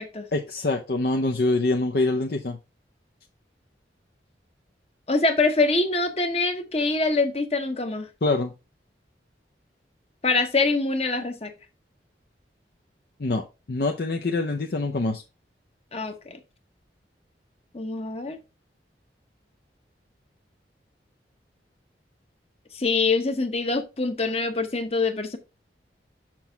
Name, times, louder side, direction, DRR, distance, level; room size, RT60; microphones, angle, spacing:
voice 1, 0.3-2.6 8.2-8.5 13.2-15.2, left 2 dB, 60° left, 0.6 m, -25 dB
voice 2, 5.1-8.1 10.2-11.5 15.9-16.4 17.7-18.4 22.7-25.4, left 3 dB, 35° left, 0.9 m, -24 dB
6.1 x 6.0 x 3.4 m
head